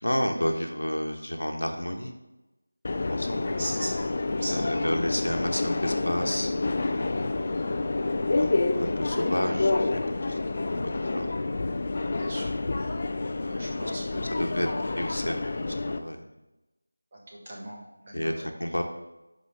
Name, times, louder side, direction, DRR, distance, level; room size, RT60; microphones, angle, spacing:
voice 1, 0.0-2.1 3.1-3.6 4.5-6.5 6.9-7.3 8.4-11.3 13.2-16.3 18.1-18.8, equal, 75° left, 4 dB, 1.2 m, -31 dB
Subway metro underground, 2.8-16.0, left 3 dB, 35° left, 0.4 m, -28 dB
voice 2, 3.6-4.0 4.4-4.8 9.4-9.6 12.2-12.5 13.5-14.3 17.1-18.4, right 1 dB, 30° right, -2 dB, 1.6 m, -38 dB
12.0 x 5.1 x 3.4 m, 1.0 s
figure-of-eight pair, 170°, 0 cm